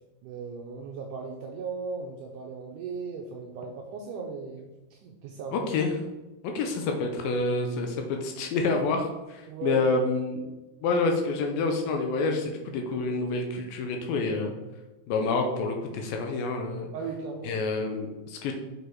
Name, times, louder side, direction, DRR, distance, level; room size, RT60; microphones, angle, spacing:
voice 1, 0.2-5.7 9.5-9.8 16.9-17.5, right 5 dB, 85° right, 1 dB, 1.9 m, -37 dB
voice 2, 5.5-5.9 6.4-10.5 10.8-14.5 15.1-16.9 17.4-18.5, left 3 dB, 80° left, 3 dB, 2.4 m, -28 dB
6.5 x 5.3 x 4.6 m, 1.1 s
omnidirectional pair, 4.4 m